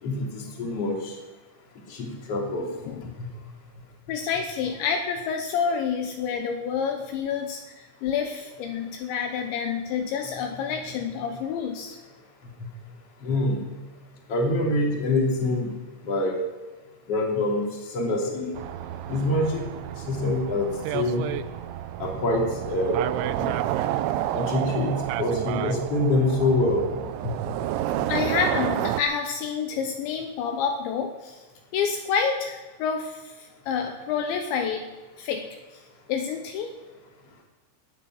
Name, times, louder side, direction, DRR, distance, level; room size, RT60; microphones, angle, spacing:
voice 1, 0.0-1.1 1.9-2.7 13.2-13.6 14.3-15.7 16.0-16.3 17.1-17.7 17.9-18.5 19.1-19.6 20.1-20.7 20.9-21.2 22.0-23.0 23.4-23.5 24.3-26.8 27.2-27.3, left 2 dB, 35° left, -1 dB, 3.3 m, -25 dB
voice 2, 4.1-12.0 28.1-31.4 31.7-34.8 35.2-35.5 36.1-36.7, left 6 dB, 75° left, 4 dB, 3.2 m, -28 dB
sound 1, 18.6-29.0, right 13 dB, 80° right, 2.8 m, -30 dB
17.0 x 10.5 x 6.3 m, 1.2 s
omnidirectional pair, 5.6 m